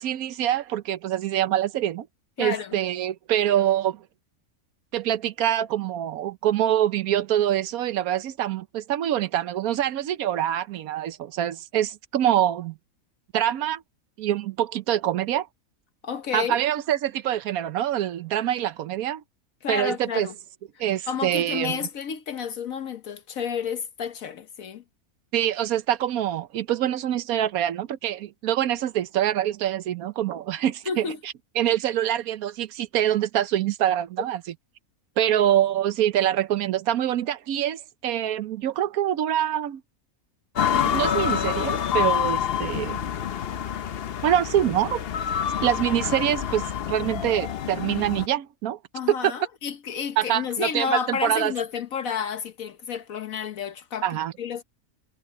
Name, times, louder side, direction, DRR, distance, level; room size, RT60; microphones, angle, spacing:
voice 1, 0.0-2.1 2.4-4.0 4.9-12.8 13.3-13.8 14.2-15.5 16.3-19.2 19.7-20.3 20.8-21.8 25.3-34.4 35.2-39.8 40.7-43.0 44.2-45.0 45.6-48.8 49.1-49.3 50.2-51.5 54.0-54.3, right 11 dB, 80° right, 1.2 m, -25 dB
voice 2, 2.4-2.8 16.0-16.6 19.6-20.3 21.1-24.8 30.9-31.2 48.9-54.6, left 7 dB, 70° left, 1.3 m, -30 dB
sound 1, 40.6-48.3, left 9 dB, 50° left, 0.8 m, -27 dB
omnidirectional pair, 1.5 m